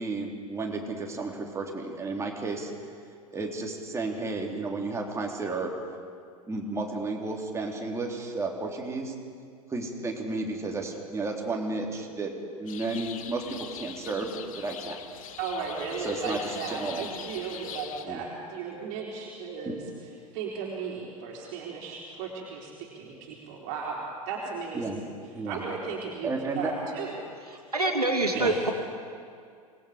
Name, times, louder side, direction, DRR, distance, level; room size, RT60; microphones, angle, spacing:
voice 1, 0.0-2.7 3.3-5.7 6.5-9.1 9.7-12.3 12.6-15.0 16.0-17.0 18.1-18.2 19.7-19.8 24.7-25.0 25.3-25.6 26.2-26.7 28.3-28.5, right 3 dB, 15° right, 0 dB, 3.5 m, -32 dB
sound 1, 12.7-18.0, left 8 dB, 65° left, 1.5 m, -42 dB
voice 2, 15.4-19.8 20.3-24.0 24.3-24.8 25.4-27.1 27.5-27.6 28.3-28.5, right 5 dB, 45° right, -3 dB, 4.1 m, -35 dB
voice 3, 27.5-28.7, right 2 dB, 90° right, 3 dB, 2.6 m, -26 dB
27.0 x 19.5 x 5.2 m, 2.3 s
figure-of-eight pair, 90°, 19 cm